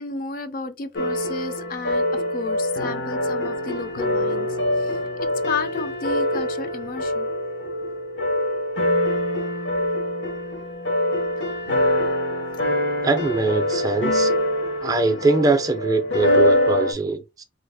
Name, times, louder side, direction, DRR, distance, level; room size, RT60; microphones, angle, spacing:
voice 1, 0.0-4.5 4.8-7.3, left 4 dB, 50° left, 0.4 m, -32 dB
sound 1, 1.0-16.9, left 1 dB, 80° left, 0.8 m, -24 dB
voice 2, 13.0-14.3 14.8-17.4, right 3 dB, 20° right, 0.3 m, -22 dB
3.2 x 2.0 x 3.4 m
head